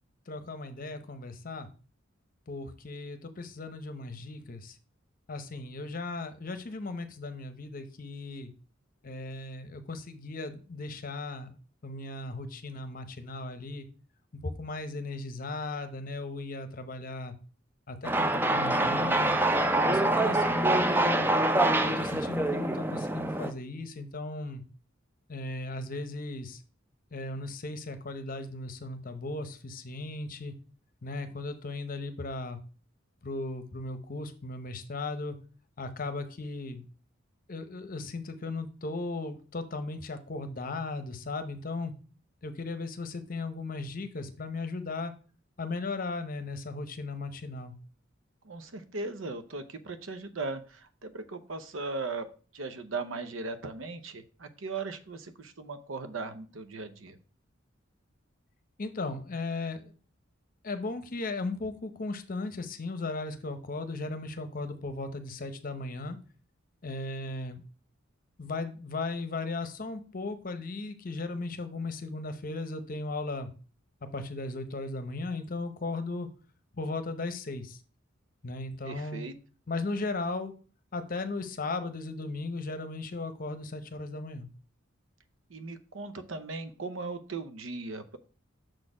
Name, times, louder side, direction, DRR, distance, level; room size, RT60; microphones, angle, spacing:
voice 1, 0.3-1.7 2.5-4.8 5.3-8.5 9.0-11.5 11.8-13.9 14.3-17.4 17.9-19.4 19.8-21.3 21.8-24.6 25.3-26.6 27.1-30.5 31.0-32.6 33.2-35.4 35.8-36.9 37.5-41.9 42.4-45.1 45.6-47.7 58.8-59.9 60.6-66.2 66.8-67.6 68.4-73.5 74.0-76.3 76.7-77.8 78.4-79.3 79.7-80.5 80.9-84.5, left 3 dB, 45° left, 10 dB, 0.7 m, -36 dB
sound 1, 18.0-23.5, right 1 dB, 10° right, 0.4 m, -25 dB
voice 2, 48.4-52.3 52.5-57.2 78.9-79.3 85.5-88.2, right 3 dB, 75° right, 10 dB, 0.8 m, -38 dB
6.3 x 4.3 x 4.8 m, 0.38 s
head